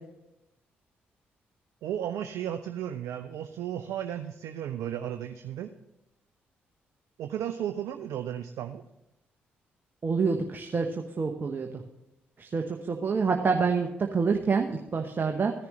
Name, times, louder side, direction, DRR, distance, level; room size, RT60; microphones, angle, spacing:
voice 1, 1.8-5.7 7.2-8.8, right 10 dB, 65° right, 8 dB, 0.5 m, -34 dB
voice 2, 10.0-10.9 11.2-11.7 12.4-15.5, right 5 dB, 40° right, 3 dB, 1.0 m, -27 dB
15.0 x 10.5 x 3.2 m, 0.91 s
hypercardioid pair, 40°, 5 cm